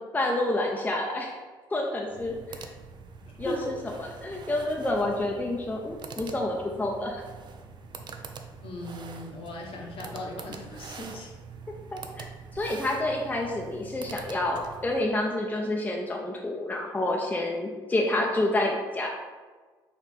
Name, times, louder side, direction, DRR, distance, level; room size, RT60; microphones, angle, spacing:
voice 1, 0.1-1.4 1.7-2.7 3.4-7.2 11.9-12.3 12.5-19.1, left 1 dB, 15° left, 0 dB, 0.5 m, -29 dB
sound 1, 2.1-15.1, right 5 dB, 40° right, 0.4 m, -44 dB
voice 2, 8.6-11.3, left 1 dB, 50° left, -1 dB, 0.9 m, -37 dB
4.2 x 3.0 x 3.3 m, 1.4 s
hypercardioid pair, 50°, 12 cm